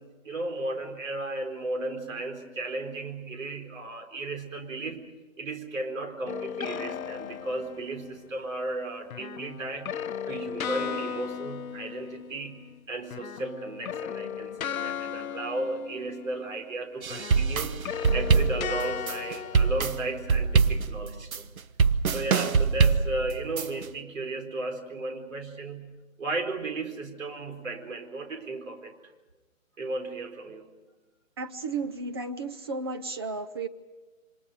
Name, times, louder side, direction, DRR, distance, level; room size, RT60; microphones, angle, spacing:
voice 1, 0.0-5.1 5.4-10.0 10.3-17.8 18.1-21.5 22.1-28.9 29.8-30.7, right 2 dB, 70° right, 5 dB, 4.5 m, -35 dB
sound 1, 6.3-8.2 9.1-12.8 13.0-16.7 17.1-20.5, left 8 dB, 90° left, 0.7 m, -36 dB
sound 2, 17.0-23.9, right 5 dB, 85° right, 1.2 m, -24 dB
voice 2, 31.4-33.7, right 3 dB, 20° right, 8 dB, 0.7 m, -33 dB
28.0 x 25.5 x 5.1 m, 1.2 s
hypercardioid pair, 165°, 41 cm